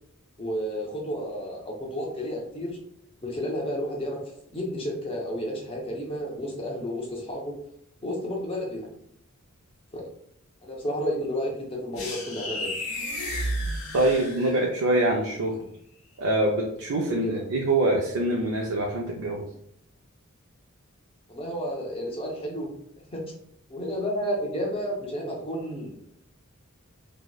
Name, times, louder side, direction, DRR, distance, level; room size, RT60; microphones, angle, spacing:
voice 1, 0.4-2.8 3.2-7.6 8.0-8.9 9.9-10.0 10.6-12.7 17.1-17.4 21.3-22.7 23.1-23.2 23.7-26.1, equal, 25° left, -1 dB, 0.6 m, -31 dB
sound 1, 11.9-14.8, equal, 75° left, 0.8 m, -32 dB
voice 2, 13.9-15.6 16.2-19.4, right 1 dB, 85° right, -1 dB, 0.4 m, -24 dB
2.7 x 2.0 x 2.2 m, 0.71 s
head